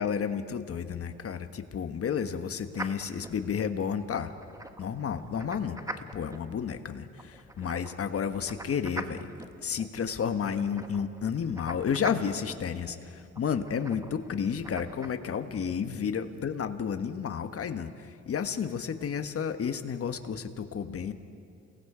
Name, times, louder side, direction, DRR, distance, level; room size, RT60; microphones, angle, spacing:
voice 1, 0.0-4.3 4.8-5.8 6.1-9.3 9.6-21.1, left 7 dB, 50° left, 9 dB, 1.4 m, -31 dB
sound 1, 2.7-15.1, right 1 dB, 10° right, 1.1 m, -44 dB
29.5 x 19.0 x 5.0 m, 2.4 s
cardioid pair, 90°, 30 cm